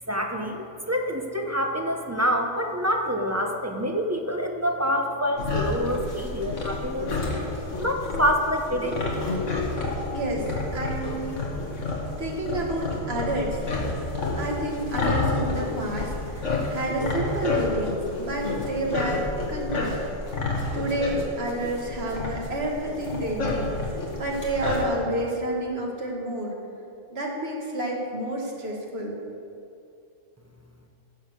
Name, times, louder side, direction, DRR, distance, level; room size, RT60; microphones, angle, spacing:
voice 1, 0.1-7.1 7.8-9.0, equal, 15° right, 2 dB, 0.9 m, -26 dB
sound 1, 5.4-24.8, left 2 dB, 65° left, 2.1 m, -30 dB
voice 2, 10.1-10.5 10.7-11.4 12.2-13.6 14.4-20.0 20.7-23.7 24.2-26.5 27.1-29.2, right 1 dB, 50° right, -1 dB, 2.3 m, -29 dB
16.0 x 7.3 x 6.4 m, 2.6 s
omnidirectional pair, 1.4 m